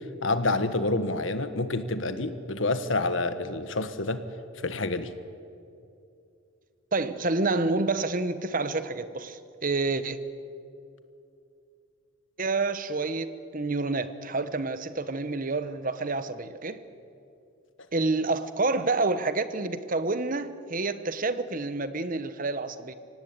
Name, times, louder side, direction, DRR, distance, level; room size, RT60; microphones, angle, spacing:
voice 1, 0.2-4.2 4.6-5.1, left 2 dB, 65° left, 1.4 m, -28 dB
voice 2, 6.9-10.2 12.4-16.8 17.9-22.9, right 3 dB, 40° right, 1.1 m, -28 dB
25.5 x 18.0 x 9.0 m
head